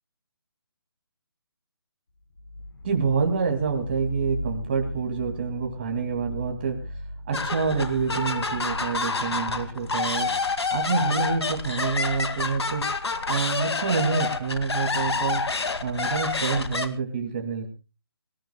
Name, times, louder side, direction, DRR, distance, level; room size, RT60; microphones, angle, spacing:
sound 1, 2.3-12.2, equal, 65° left, 4.7 m, -38 dB
voice 1, 2.8-6.8 7.3-10.3 10.7-12.8 13.3-15.4 15.8-17.7, right 5 dB, 20° right, 3 dB, 2.6 m, -27 dB
sound 2, 7.3-16.9, left 4 dB, 90° left, 2.4 m, -28 dB
26.0 x 13.5 x 2.3 m, 0.30 s
hypercardioid pair, 175°, 13 cm